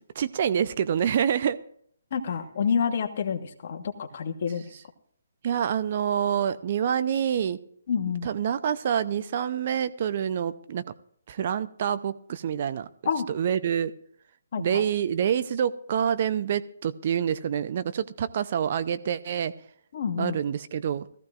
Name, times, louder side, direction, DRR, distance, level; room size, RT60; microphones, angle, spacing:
voice 1, 0.2-1.6 5.4-7.6 8.2-10.8 11.3-12.9 13.3-13.9 14.6-19.5 20.2-21.1, right 8 dB, 45° right, 13 dB, 0.6 m, -27 dB
voice 2, 2.1-4.7 7.9-8.3 13.0-13.3 14.5-14.8 19.9-20.4, left 6 dB, 50° left, 7 dB, 1.3 m, -28 dB
18.5 x 14.5 x 2.5 m, 0.64 s
figure-of-eight pair, 140°, 0 cm